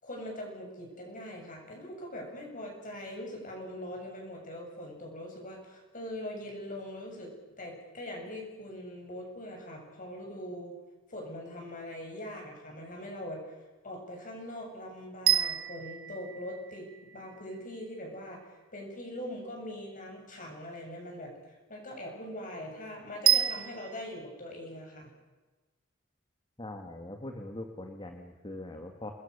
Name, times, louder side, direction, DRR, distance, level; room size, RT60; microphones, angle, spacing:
voice 1, 0.0-10.8 11.1-13.6 13.8-25.1, left 1 dB, 40° left, 1 dB, 7.8 m, -42 dB
sound 1, 15.3-17.4 23.3-24.0, right 12 dB, 80° right, 1.0 m, -29 dB
voice 2, 26.6-29.1, left 1 dB, 25° left, 4 dB, 2.0 m, -42 dB
28.5 x 21.0 x 6.8 m, 1.2 s
head